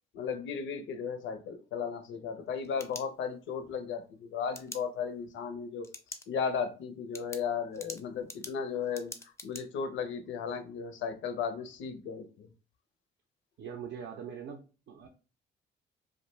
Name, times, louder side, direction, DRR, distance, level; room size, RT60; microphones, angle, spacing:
voice 1, 0.1-5.9 6.3-9.1 9.4-12.5, left 6 dB, 75° left, 0.5 m, -35 dB
sound 1, 2.4-3.6 4.5-4.8 5.8-6.3 6.6-6.7 7.1-9.6, left 2 dB, 15° left, 0.4 m, -45 dB
voice 2, 13.6-15.1, right 7 dB, 65° right, 0.4 m, -42 dB
2.4 x 2.1 x 3.1 m
cardioid pair, 90°, 20 cm